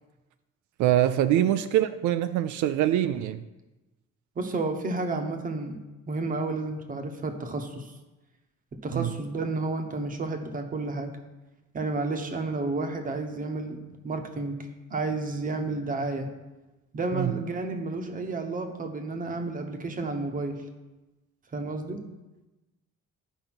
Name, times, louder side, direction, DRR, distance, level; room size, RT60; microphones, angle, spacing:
voice 1, 0.8-3.4 8.9-9.1 17.1-17.4, right 12 dB, 80° right, 0.5 m, -24 dB
voice 2, 4.4-5.8 6.1-7.9 8.7-11.2 11.7-16.3 16.9-20.6 21.5-22.0, right 3 dB, 30° right, 0.9 m, -31 dB
11.0 x 5.2 x 5.9 m
cardioid pair, 170°, 30 cm